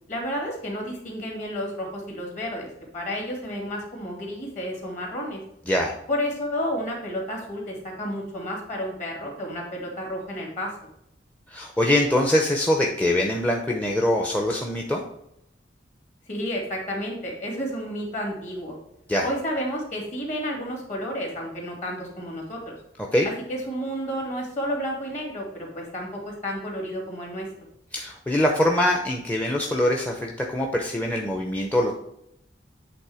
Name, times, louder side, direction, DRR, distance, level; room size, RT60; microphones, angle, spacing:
voice 1, 0.1-5.4 6.1-10.7 16.3-18.8 19.2-22.7 23.2-27.5, equal, 45° left, 0 dB, 2.4 m, -31 dB
voice 2, 11.5-15.0 19.1-19.3 23.1-23.3 27.9-31.9, left 1 dB, 10° left, 0 dB, 0.6 m, -23 dB
8.4 x 3.5 x 4.8 m, 0.77 s
head